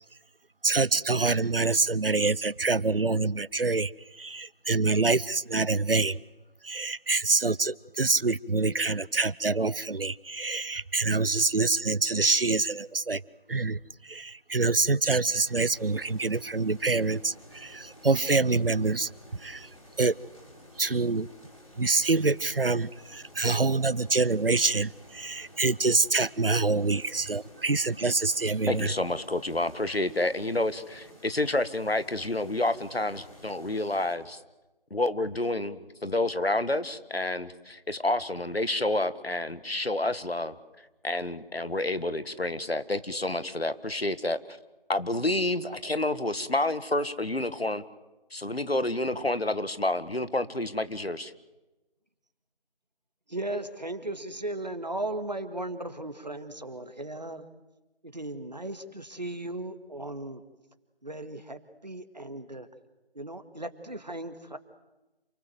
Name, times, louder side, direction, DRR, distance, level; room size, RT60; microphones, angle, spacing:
voice 1, 0.6-6.2 6.6-13.2 13.5-19.1 19.4-19.7 20.0-20.1 20.8-21.3 21.8-28.9, right 3 dB, 70° right, 21 dB, 0.8 m, -26 dB
sound 1, 15.4-34.2, equal, 35° left, 6.8 m, -52 dB
voice 2, 28.7-34.4 34.9-44.6 44.9-47.8 48.3-51.3, left 2 dB, 90° left, 13 dB, 1.8 m, -29 dB
voice 3, 53.3-57.5 58.0-60.4 61.0-62.7 63.1-64.6, right 1 dB, 45° right, 10 dB, 1.9 m, -36 dB
28.0 x 19.0 x 7.9 m, 1.1 s
figure-of-eight pair, 175°, 29 cm